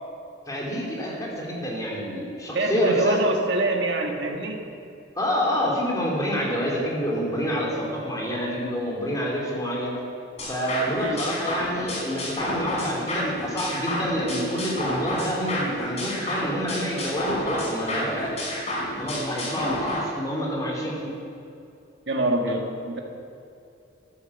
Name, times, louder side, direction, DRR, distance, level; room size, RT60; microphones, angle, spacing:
voice 1, 0.5-3.2 5.2-10.0 10.5-18.4 19.0-21.1 22.5-22.6, equal, 20° left, -3 dB, 3.1 m, -27 dB
voice 2, 2.5-4.6 10.9-11.2 22.1-23.0, right 2 dB, 60° right, 2 dB, 1.7 m, -25 dB
sound 1, 10.4-20.0, left 1 dB, 35° left, 3.8 m, -30 dB
14.0 x 9.5 x 7.2 m, 2.6 s
head